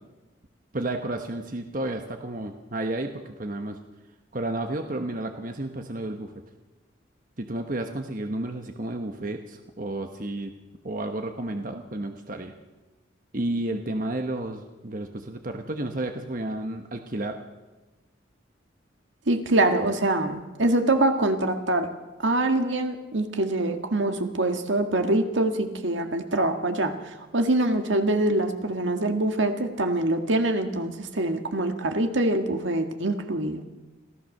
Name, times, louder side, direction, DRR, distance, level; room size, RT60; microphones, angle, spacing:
voice 1, 0.7-3.8 4.3-6.3 7.4-10.5 10.8-12.5 13.3-17.4, right 1 dB, 45° right, 5 dB, 1.1 m, -31 dB
voice 2, 19.3-21.9 22.2-33.7, right 2 dB, 75° right, 6 dB, 1.8 m, -24 dB
26.0 x 15.5 x 6.6 m, 1.2 s
head